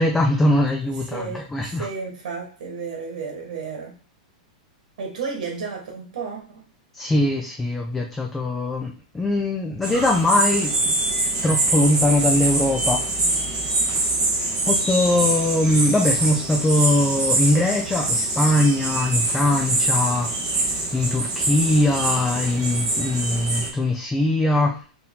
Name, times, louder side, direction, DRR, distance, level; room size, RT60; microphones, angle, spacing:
voice 1, 0.0-1.9 6.9-10.9 11.4-13.0 14.7-24.8, left 1 dB, 5° left, 1 dB, 0.4 m, -21 dB
voice 2, 1.1-4.0 5.0-6.6, right 5 dB, 75° right, 1 dB, 1.3 m, -32 dB
sound 1, 9.8-23.7, right 2 dB, 20° right, 1.2 m, -24 dB
4.3 x 2.8 x 3.6 m, 0.38 s
supercardioid pair, 165°, 4 cm